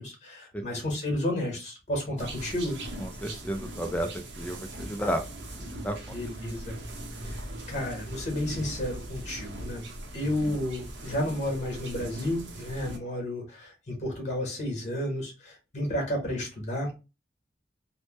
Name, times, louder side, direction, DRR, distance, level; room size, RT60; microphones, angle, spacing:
voice 1, 0.0-2.8 6.1-6.8 7.2-9.9 10.1-17.0, left 1 dB, 40° left, 1 dB, 1.3 m, -32 dB
sound 1, 2.2-13.0, right 1 dB, 80° right, 0.7 m, -40 dB
voice 2, 3.0-4.1 4.4-5.2 5.8-6.0, equal, 10° left, 6 dB, 0.3 m, -31 dB
3.1 x 2.1 x 3.0 m, 0.28 s
head